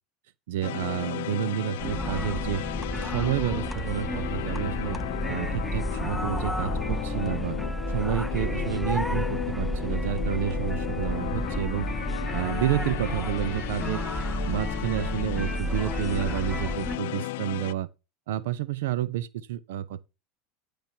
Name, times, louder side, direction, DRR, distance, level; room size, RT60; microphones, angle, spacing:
voice 1, 0.5-2.6 3.0-5.0 5.3-7.6 7.9-11.9 12.3-14.0 14.5-17.9 18.3-20.0, right 11 dB, 85° right, 0.7 m, -30 dB
sound 1, 0.6-17.7, left 17 dB, 80° left, 0.5 m, -35 dB
sound 2, 1.8-17.0, equal, ahead, 0.4 m, -31 dB
15.0 x 5.1 x 2.9 m
supercardioid pair, 140°, 0 cm